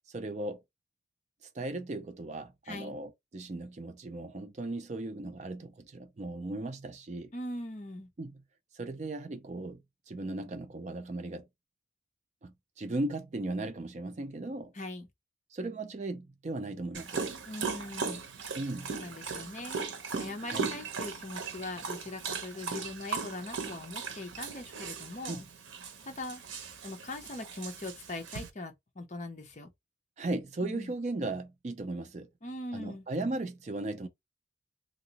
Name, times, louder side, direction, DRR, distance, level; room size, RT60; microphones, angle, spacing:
voice 1, 0.1-0.6 1.5-7.3 8.2-8.4 8.7-11.5 12.4-14.7 15.5-17.3 18.6-19.0 20.4-20.7 25.3-25.4 30.2-32.3 32.7-34.1, right 2 dB, 35° right, 0.4 m, -37 dB
voice 2, 2.7-3.0 7.3-8.1 14.7-15.1 17.5-18.2 18.9-19.8 20.2-25.5 26.0-26.4 26.8-29.7 30.6-30.9 32.4-33.1, left 2 dB, 40° left, 0.6 m, -41 dB
Dog, 16.9-28.5, right 5 dB, 85° right, 0.7 m, -38 dB
2.9 x 2.8 x 2.8 m
head